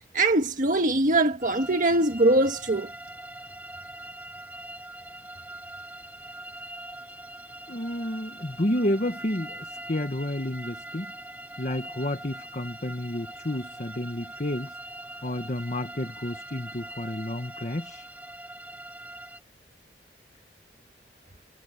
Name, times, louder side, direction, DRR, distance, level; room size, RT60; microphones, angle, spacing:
voice 1, 0.1-2.9, right 2 dB, 50° right, 1.6 m, -22 dB
sound 1, 1.4-19.4, right 1 dB, 10° right, 5.1 m, -42 dB
voice 2, 7.7-11.1 11.6-14.8 15.2-18.1, left 1 dB, 45° left, 1.4 m, -30 dB
head